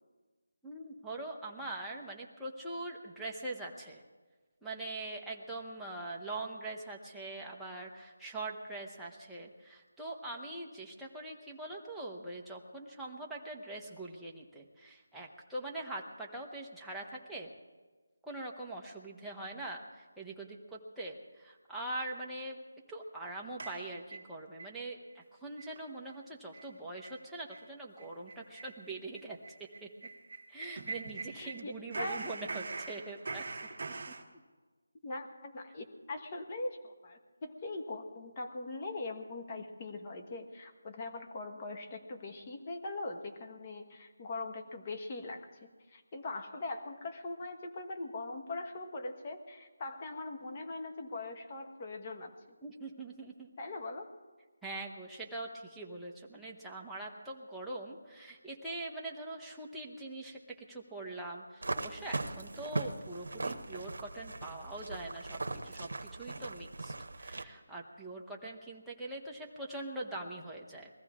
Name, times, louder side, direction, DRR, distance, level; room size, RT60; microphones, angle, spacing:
voice 1, 0.6-4.0 4.6-17.5 18.3-22.6 22.9-29.4 29.8-29.9 30.5-33.4 33.8-34.1 52.6-53.5 54.6-70.9, right 2 dB, ahead, -5 dB, 1.0 m, -43 dB
sound 1, 23.6-24.7 25.1-25.2 25.6-25.8 26.1-26.2 26.5-26.7 27.0-27.2 27.5-27.6 28.0-31.6 31.9-34.2, right 3 dB, 45° right, 1.7 m, -43 dB
voice 2, 31.3-32.2 35.0-52.3 53.6-54.1, left 2 dB, 25° left, 3 dB, 1.4 m, -41 dB
sound 2, 61.6-67.4, right 2 dB, 70° right, 1.2 m, -39 dB
22.0 x 14.5 x 3.7 m, 1.3 s
figure-of-eight pair, 170°, 0 cm